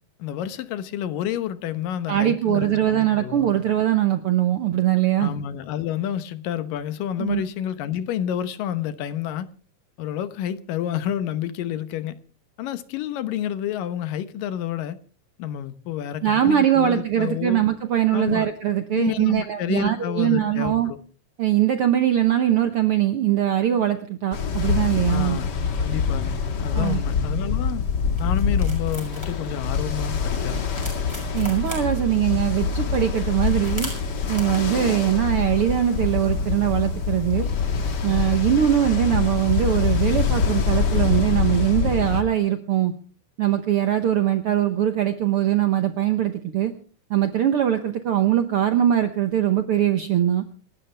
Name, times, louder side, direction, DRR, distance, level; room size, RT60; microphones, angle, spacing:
voice 1, 0.2-3.6 5.2-9.5 10.0-12.2 12.6-15.0 15.4-17.6 18.1-18.5 18.9-21.0 25.1-26.4 26.6-27.8 28.2-30.7, left 10 dB, 90° left, 2.7 m, -29 dB
voice 2, 2.1-5.3 7.2-7.4 16.2-20.9 21.4-25.4 26.7-27.0 31.3-33.9 34.3-37.5 38.0-42.9 43.4-46.7 47.1-50.4, right 11 dB, 75° right, 1.3 m, -21 dB
Ocean, 24.3-42.2, left 5 dB, 45° left, 1.5 m, -25 dB
sound 1, 27.8-40.7, equal, 10° left, 6.1 m, -44 dB
27.0 x 12.5 x 3.4 m
omnidirectional pair, 3.8 m